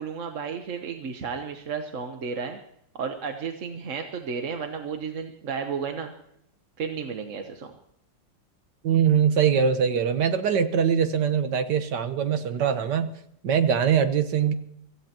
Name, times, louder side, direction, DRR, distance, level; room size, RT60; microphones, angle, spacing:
voice 1, 0.0-2.6 3.0-6.1 6.8-7.7, right 6 dB, 45° right, 5 dB, 1.2 m, -33 dB
voice 2, 8.8-13.1 13.4-14.5, right 7 dB, 65° right, 9 dB, 1.7 m, -22 dB
25.0 x 16.0 x 3.0 m, 0.72 s
omnidirectional pair, 2.1 m